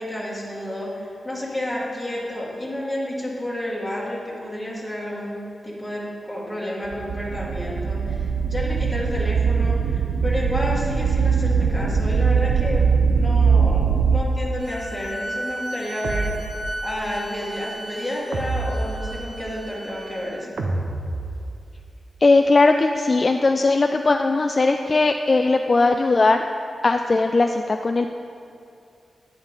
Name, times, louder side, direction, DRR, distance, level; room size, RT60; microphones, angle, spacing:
voice 1, 0.0-12.9 13.1-16.4 16.8-20.6, left 1 dB, 5° left, -6 dB, 2.1 m, -30 dB
sound 1, 6.9-14.2, right 5 dB, 60° right, 0.4 m, -21 dB
sound 2, 14.6-20.3, right 1 dB, 25° right, 1.3 m, -35 dB
sound 3, 16.0-17.1 18.3-19.6 20.6-21.8, right 2 dB, 85° right, 1.0 m, -29 dB
voice 2, 22.2-26.4 26.8-28.1, left 3 dB, 30° left, 5 dB, 0.3 m, -19 dB
11.0 x 10.5 x 3.7 m, 2.6 s
wide cardioid pair, 170°, 0 cm